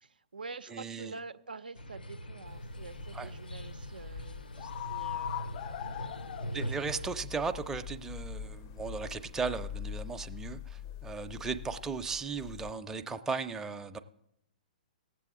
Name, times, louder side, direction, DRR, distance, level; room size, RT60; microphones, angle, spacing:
voice 1, 0.0-5.9 6.3-6.8, right 3 dB, 85° right, 0.7 m, -47 dB
voice 2, 0.7-1.1 3.1-3.3 6.5-14.0, right 5 dB, 10° right, 0.5 m, -36 dB
sound 1, 1.7-7.1, equal, 90° left, 0.6 m, -41 dB
sound 2, 2.5-12.7, left 10 dB, 40° left, 0.4 m, -42 dB
18.0 x 7.6 x 3.7 m
hypercardioid pair, 120°, 5 cm